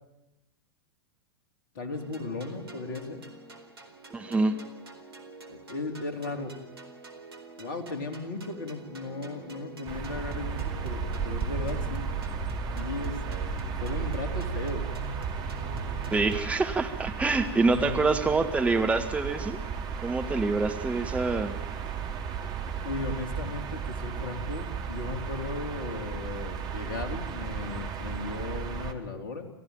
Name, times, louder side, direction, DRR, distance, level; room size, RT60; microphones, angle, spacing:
voice 1, 1.7-3.2 5.5-6.5 7.6-12.1 12.8-13.2 13.7-14.8 17.7-18.0 22.8-29.5, left 3 dB, 55° left, 6 dB, 4.2 m, -36 dB
sound 1, 1.9-16.6, right 3 dB, 70° right, 4.3 m, -40 dB
voice 2, 4.1-4.6 16.1-19.6 20.0-21.5, right 3 dB, 10° right, 6 dB, 1.8 m, -26 dB
sound 2, 9.9-28.9, right 6 dB, 30° right, 2.8 m, -35 dB
29.5 x 15.0 x 9.0 m, 0.92 s
figure-of-eight pair, 95°, 13 cm